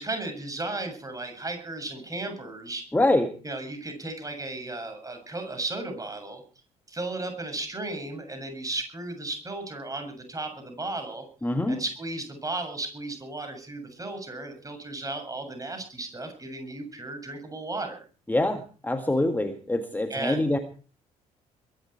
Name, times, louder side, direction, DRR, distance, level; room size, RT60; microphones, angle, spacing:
voice 1, 0.0-2.9 3.4-6.4 6.9-11.3 11.7-18.0 20.1-20.6, right 2 dB, 20° right, 5 dB, 7.5 m, -35 dB
voice 2, 2.9-3.3 11.4-11.8 18.3-20.6, left 1 dB, 10° left, 7 dB, 1.8 m, -25 dB
22.5 x 12.0 x 4.6 m, 0.38 s
figure-of-eight pair, 50°, 19 cm